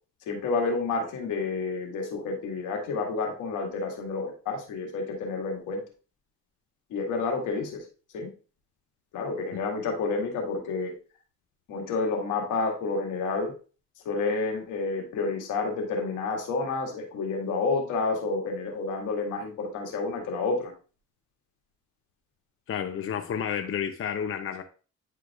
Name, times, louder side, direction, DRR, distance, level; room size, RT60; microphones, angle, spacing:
voice 1, 0.3-5.8 6.9-7.8 8.1-8.3 9.1-10.9 11.7-13.5 14.1-20.7, left 3 dB, 90° left, 1 dB, 2.0 m, -29 dB
voice 2, 22.7-24.6, left 8 dB, 45° left, 7 dB, 0.7 m, -30 dB
9.9 x 4.7 x 2.4 m, 0.36 s
cardioid pair, 90°, 30 cm